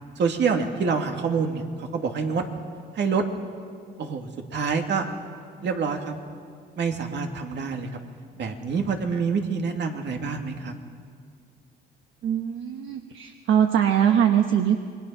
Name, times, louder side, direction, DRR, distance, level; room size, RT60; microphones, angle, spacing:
voice 1, 0.2-2.4 2.9-3.2 4.0-5.1 5.6-6.1 6.8-8.0 8.4-10.7, right 5 dB, 60° right, 3 dB, 2.5 m, -26 dB
voice 2, 12.2-14.8, right 9 dB, 80° right, 5 dB, 1.2 m, -22 dB
27.5 x 22.0 x 5.8 m, 2.2 s
cardioid pair, 90°, 20 cm